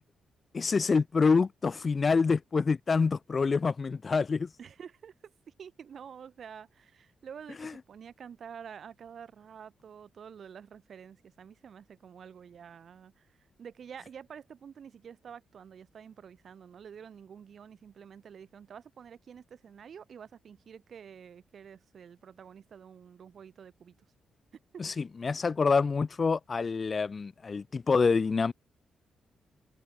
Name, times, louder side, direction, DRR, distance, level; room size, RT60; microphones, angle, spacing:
voice 1, 0.5-4.5 24.8-28.5, left 4 dB, 40° left, 0.7 m, -26 dB
voice 2, 4.6-5.1 5.5-24.0 24.7-24.8, right 7 dB, 60° right, 3.5 m, -48 dB
cardioid pair, 85°, 0 cm